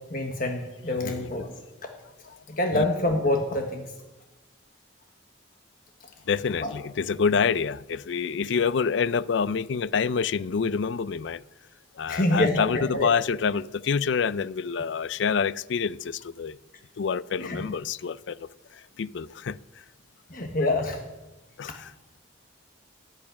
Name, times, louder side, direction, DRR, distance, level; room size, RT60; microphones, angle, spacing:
voice 1, 0.1-1.5 1.8-1.9 2.5-3.8 6.6-6.7 12.0-13.1 17.4-17.6 20.3-21.0, left 1 dB, 45° left, 1.3 m, -26 dB
voice 2, 1.0-1.3 2.3-2.4 2.7-2.8 6.3-11.4 12.0-16.6 17.0-18.4 19.0-19.6 21.6-21.9, left 6 dB, 65° left, 0.4 m, -27 dB
17.0 x 11.0 x 5.9 m
head